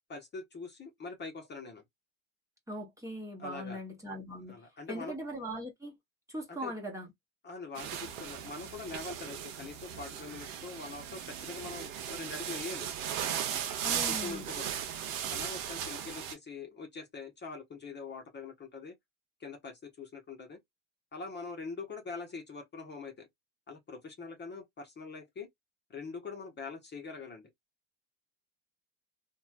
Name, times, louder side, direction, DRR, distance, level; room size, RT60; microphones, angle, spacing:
voice 1, 0.1-1.8 3.4-3.8 4.5-5.1 6.5-6.7 7.4-12.9 13.8-14.7 15.3-18.9 19.4-20.6 21.1-23.3 23.7-25.5 25.9-27.5, left 4 dB, 25° left, 1.1 m, -43 dB
voice 2, 2.7-4.5 4.9-6.0 6.3-7.1 13.8-14.5, equal, 10° right, 1.1 m, -40 dB
sound 1, 7.8-16.3, right 9 dB, 75° right, 1.0 m, -37 dB
3.2 x 2.6 x 2.4 m
supercardioid pair, 95°, 38 cm